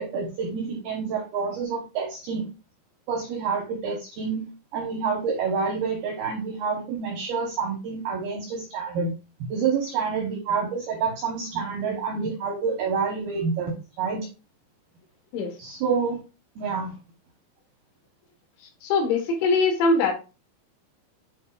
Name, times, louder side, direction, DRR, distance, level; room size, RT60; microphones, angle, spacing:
voice 1, 0.0-2.5 3.1-9.1 9.5-14.3 15.6-16.2 16.6-16.9, right 5 dB, 75° right, 0 dB, 2.3 m, -28 dB
voice 2, 18.8-20.1, left 3 dB, 75° left, 2 dB, 3.7 m, -22 dB
8.5 x 5.2 x 2.4 m, 0.31 s
omnidirectional pair, 5.6 m